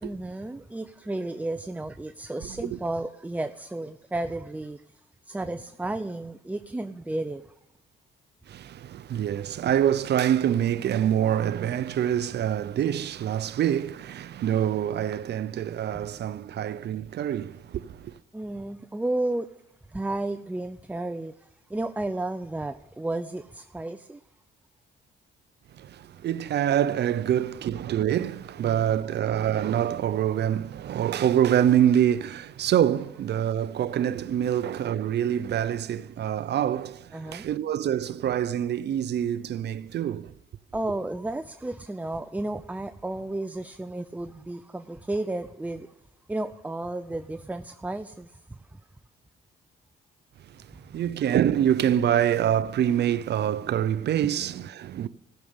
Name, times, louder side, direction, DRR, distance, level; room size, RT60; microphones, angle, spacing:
voice 1, 0.0-7.5 15.9-16.1 18.3-19.5 19.9-24.2 37.1-37.5 40.7-45.9 46.3-48.8 50.7-50.8, right 2 dB, 5° right, 0.5 m, -33 dB
voice 2, 8.5-18.1 25.8-40.3 50.9-55.1, right 10 dB, 60° right, 0.6 m, -25 dB
14.5 x 6.6 x 8.8 m
cardioid pair, 90°, 20 cm